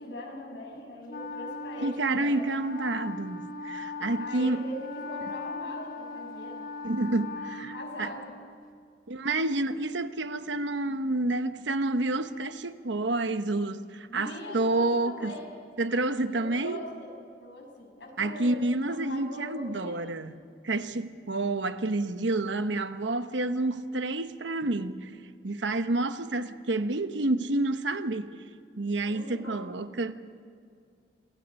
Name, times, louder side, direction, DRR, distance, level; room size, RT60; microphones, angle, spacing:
voice 1, 0.0-2.4 4.2-6.6 7.7-8.4 14.2-15.5 16.3-17.1 17.4-18.5 18.8-20.0 29.0-29.7, left 1 dB, 75° left, 6.7 m, -41 dB
Wind instrument woodwind instrument, 1.1-8.6, left 3 dB, 50° left, 1.1 m, -39 dB
voice 2, 1.8-4.6 6.8-8.1 9.1-15.3 15.8-16.8 18.2-20.4 20.6-25.1 25.4-28.4 28.8-30.1, right 2 dB, 80° right, 1.0 m, -29 dB
27.5 x 23.0 x 5.5 m
head